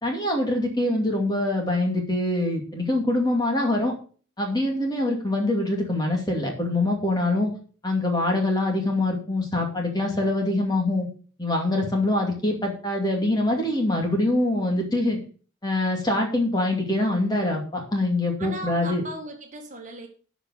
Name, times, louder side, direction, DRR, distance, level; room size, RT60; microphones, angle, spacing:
voice 1, 0.0-3.9 4.4-7.5 7.8-11.1 11.4-15.2 15.6-19.0, left 1 dB, 20° left, 1 dB, 2.4 m, -24 dB
voice 2, 18.4-20.1, right 2 dB, 35° right, 2 dB, 1.9 m, -37 dB
12.5 x 5.1 x 6.4 m, 0.41 s
head